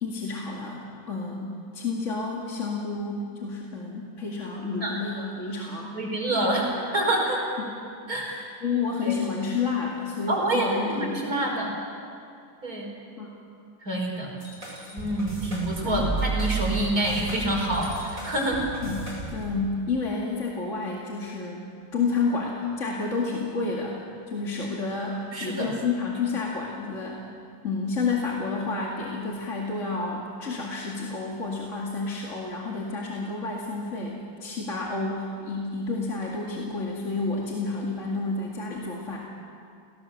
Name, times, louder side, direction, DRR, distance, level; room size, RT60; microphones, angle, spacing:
voice 1, 0.0-6.0 7.6-7.8 8.2-11.2 13.2-13.3 15.8-16.1 18.8-21.7 21.9-24.0 24.3-27.3 27.6-39.2, left 4 dB, 45° left, -2 dB, 2.5 m, -30 dB
voice 2, 5.9-7.4 8.1-8.3 9.0-9.2 10.3-11.7 12.6-12.9 13.8-14.3 14.9-18.7 25.3-25.7, right 1 dB, 55° right, -1 dB, 5.3 m, -27 dB
sound 1, 14.4-19.5, right 4 dB, 25° right, 8.1 m, -32 dB
27.0 x 18.0 x 7.3 m, 2.4 s
omnidirectional pair, 1.9 m